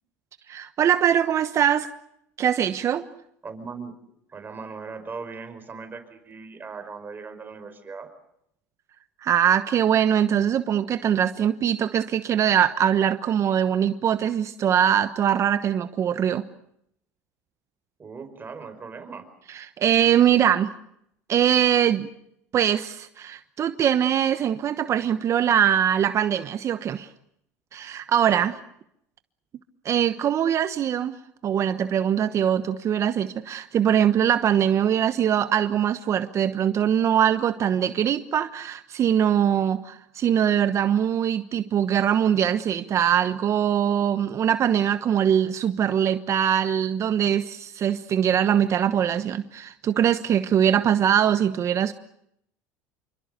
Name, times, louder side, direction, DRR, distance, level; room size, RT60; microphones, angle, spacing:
voice 1, 0.5-1.9 2.4-3.0 9.2-16.4 19.5-20.7 21.3-22.1 22.5-27.1 27.7-28.5 29.8-31.1 31.4-51.9, right 9 dB, 45° right, 11 dB, 1.1 m, -22 dB
voice 2, 3.4-4.0 4.3-8.1 18.0-19.3 28.3-28.5, right 4 dB, 30° right, 8 dB, 5.2 m, -38 dB
27.5 x 24.5 x 6.8 m, 0.75 s
hypercardioid pair, 85°, 7 cm